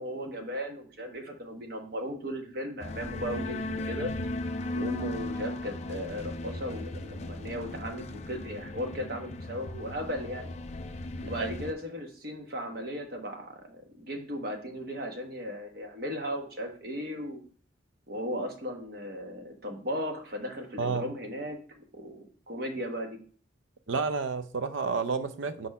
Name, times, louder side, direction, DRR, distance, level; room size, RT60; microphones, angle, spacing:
voice 1, 0.0-4.1 4.7-10.5 11.2-17.4 18.1-23.2, equal, 50° right, 3 dB, 1.1 m, -36 dB
sound 1, 2.8-11.7, left 2 dB, 35° left, 0.4 m, -37 dB
voice 2, 20.8-21.1 23.9-25.7, right 5 dB, 70° right, 11 dB, 0.5 m, -30 dB
4.8 x 4.2 x 5.3 m, 0.43 s
head